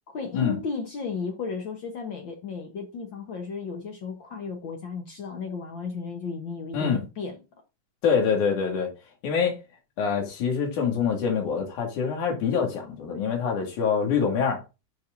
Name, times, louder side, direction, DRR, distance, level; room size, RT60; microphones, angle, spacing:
voice 1, 0.1-7.4, left 5 dB, 65° left, 1.2 m, -34 dB
voice 2, 8.0-8.9 9.2-9.6 10.0-14.6, left 6 dB, 80° left, 3.5 m, -25 dB
10.5 x 5.8 x 2.6 m
omnidirectional pair, 3.5 m